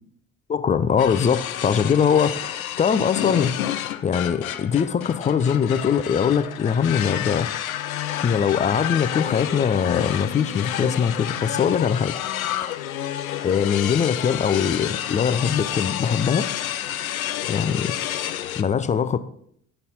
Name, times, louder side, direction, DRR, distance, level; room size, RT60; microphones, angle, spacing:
voice 1, 0.5-3.6 4.0-7.5 8.1-12.1 13.4-16.5 17.5-17.9 18.6-19.2, left 7 dB, 20° left, 0.5 m, -22 dB
sound 1, 1.0-18.6, left 12 dB, 80° left, 0.5 m, -30 dB
10.0 x 5.4 x 4.1 m
figure-of-eight pair, 55°, 41 cm